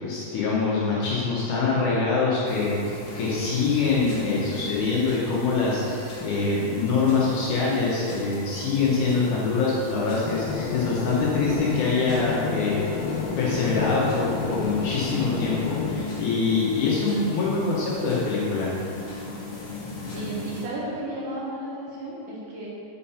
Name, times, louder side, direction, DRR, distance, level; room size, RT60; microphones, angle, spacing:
voice 1, 0.0-12.8 13.4-18.7, left 4 dB, 65° left, -6 dB, 2.3 m, -24 dB
sound 1, 2.4-20.7, left 3 dB, 50° left, 1.8 m, -38 dB
sound 2, 10.2-16.0, left 6 dB, 80° left, 2.5 m, -30 dB
voice 2, 20.1-22.7, right 1 dB, 65° right, -6 dB, 2.5 m, -33 dB
7.2 x 5.8 x 5.7 m, 2.7 s
omnidirectional pair, 4.5 m